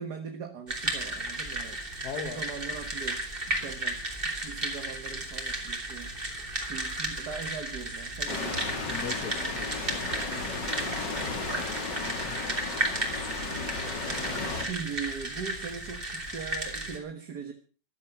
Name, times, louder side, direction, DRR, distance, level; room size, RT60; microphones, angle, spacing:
voice 1, 0.0-1.8 2.1-6.1 6.6-8.8 11.5-11.8 14.5-17.5, right 6 dB, 65° right, 6 dB, 2.0 m, -40 dB
sound 1, 0.7-17.0, right 1 dB, 30° right, 3.3 m, -34 dB
voice 2, 2.0-2.4 8.9-10.2 12.1-12.7, left 6 dB, 60° left, 4 dB, 1.9 m, -41 dB
sound 2, 8.3-14.6, left 3 dB, 80° left, 3.3 m, -34 dB
14.5 x 12.5 x 5.8 m, 0.37 s
omnidirectional pair, 1.9 m